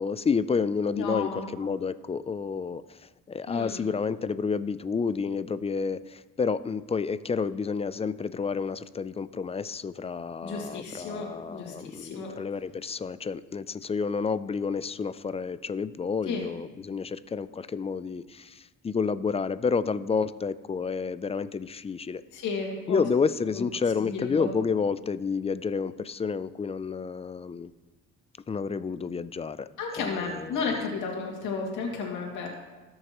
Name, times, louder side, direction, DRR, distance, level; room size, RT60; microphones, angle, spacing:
voice 1, 0.0-2.8 3.3-22.2 22.9-27.7 28.5-29.7 30.0-30.6, left 5 dB, 20° left, 15 dB, 0.4 m, -30 dB
voice 2, 0.9-1.5 3.5-3.8 10.4-12.3 16.3-16.5 22.3-23.0 23.5-23.6 24.0-24.5 29.8-32.5, left 4 dB, 85° left, -1 dB, 2.3 m, -33 dB
17.5 x 6.5 x 3.0 m, 1.2 s
cardioid pair, 90°, 30 cm